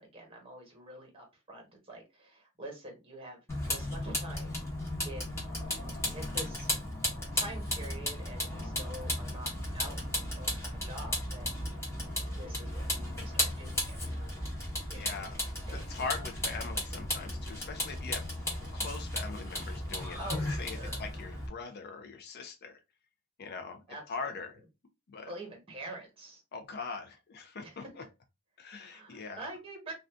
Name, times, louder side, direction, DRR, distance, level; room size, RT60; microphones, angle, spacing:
voice 1, 0.0-3.4 3.7-4.6 5.0-5.3 5.6-6.7 7.3-11.6 12.2-14.3 14.9-15.3 15.7-16.2 20.2-21.0 23.9-24.0 24.3-24.4 25.3-26.4 27.6-27.9 28.7-29.9, right 1 dB, 25° right, 1.1 m, -46 dB
Vehicle, 3.5-21.5, left 1 dB, 10° left, 1.0 m, -35 dB
voice 2, 15.0-15.4 15.7-20.2 20.6-22.7 23.4-23.8 24.1-24.6 25.1-25.3 26.5-27.8 28.6-29.5, left 5 dB, 45° left, 0.4 m, -41 dB
2.5 x 2.3 x 3.4 m
head